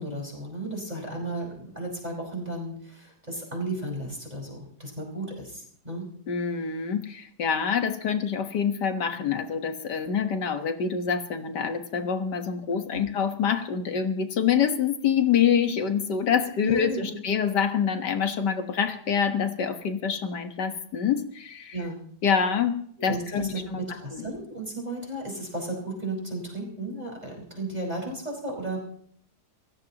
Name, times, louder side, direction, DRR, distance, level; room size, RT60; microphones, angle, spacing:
voice 1, 0.0-6.0 12.9-13.0 16.6-17.2 21.7-22.0 23.0-28.8, right 2 dB, 25° right, -2 dB, 5.3 m, -34 dB
voice 2, 6.3-21.8 22.2-22.8 23.0-23.8 24.1-24.3, left 7 dB, 85° left, 7 dB, 2.0 m, -26 dB
27.5 x 16.5 x 3.0 m, 0.62 s
omnidirectional pair, 1.8 m